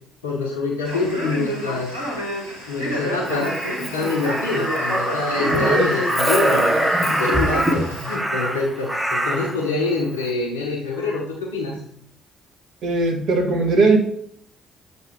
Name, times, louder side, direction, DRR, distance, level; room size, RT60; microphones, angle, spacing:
voice 1, 0.2-2.1 2.7-11.8, left 3 dB, 80° left, -4 dB, 1.1 m, -26 dB
Male speech man speaking, 0.8-8.2, equal, 85° right, 1.5 m, -29 dB
Crow, 3.2-9.6 11.0-11.2, right 1 dB, 10° right, 0.9 m, -23 dB
voice 2, 5.5-5.9 12.8-14.0, right 3 dB, 55° right, 2 dB, 1.1 m, -19 dB
7.4 x 3.2 x 4.5 m, 0.63 s
figure-of-eight pair, 45°, 0 cm